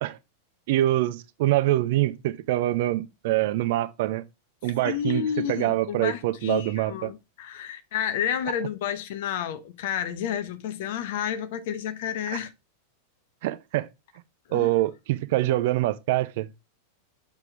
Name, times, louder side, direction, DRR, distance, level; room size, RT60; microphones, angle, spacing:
voice 1, 0.7-4.2 4.6-7.1 13.4-13.9 14.5-16.5, right 15 dB, 50° right, 0.5 m, -25 dB
voice 2, 4.8-12.5 14.5-14.7, left 9 dB, 55° left, 0.7 m, -30 dB
6.9 x 3.5 x 4.5 m
figure-of-eight pair, 90°, 0 cm